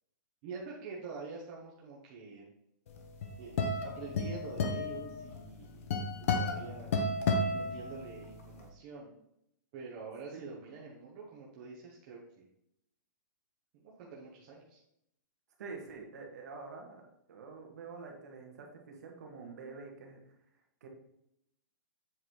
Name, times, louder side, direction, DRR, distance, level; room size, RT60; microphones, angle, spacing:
voice 1, 0.4-2.5 3.4-6.9 7.5-9.1 9.7-12.5 13.7-14.8, right 4 dB, 25° right, -4 dB, 0.8 m, -46 dB
sound 1, 3.0-8.4, left 3 dB, 40° left, 0.9 m, -33 dB
voice 2, 15.6-20.2 20.8-20.9, right 4 dB, 55° right, 1 dB, 1.7 m, -47 dB
7.6 x 3.9 x 4.7 m, 0.78 s
hypercardioid pair, 180°, 11 cm